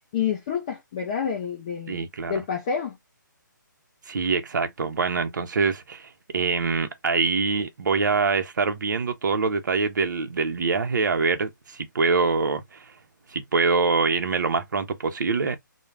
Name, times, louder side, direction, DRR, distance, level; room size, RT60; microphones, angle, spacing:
voice 1, 0.1-3.0, left 7 dB, 15° left, 0.3 m, -28 dB
voice 2, 1.9-2.4 4.1-12.9 13.3-15.6, right 4 dB, 65° right, 0.6 m, -24 dB
2.4 x 2.1 x 3.1 m
hypercardioid pair, 165°, 11 cm